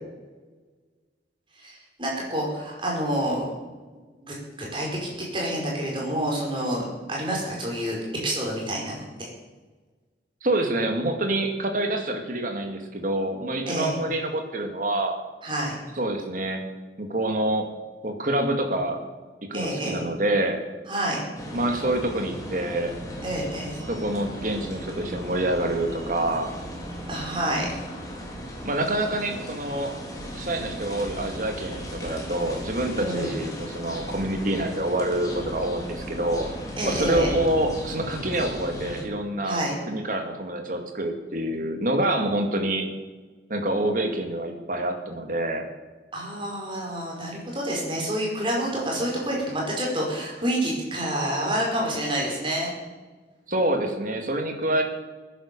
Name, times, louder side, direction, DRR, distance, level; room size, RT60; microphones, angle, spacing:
voice 1, 1.6-3.5 4.2-8.0 8.2-9.0 13.7-14.0 15.4-15.8 19.5-20.0 20.9-21.2 23.2-23.7 27.1-27.7 33.0-33.4 36.8-37.3 39.4-39.7 46.1-52.7, right 1 dB, 30° right, -2 dB, 5.1 m, -28 dB
voice 2, 10.4-15.2 16.0-16.6 17.0-17.7 18.0-19.0 19.4-20.6 21.5-22.9 23.9-26.5 28.6-30.0 30.3-36.5 36.8-42.9 43.5-45.6 53.5-54.8, right 1 dB, 50° right, 4 dB, 2.2 m, -26 dB
sound 1, 21.3-39.0, equal, 20° left, 3.2 m, -36 dB
18.0 x 10.0 x 6.9 m, 1.3 s
head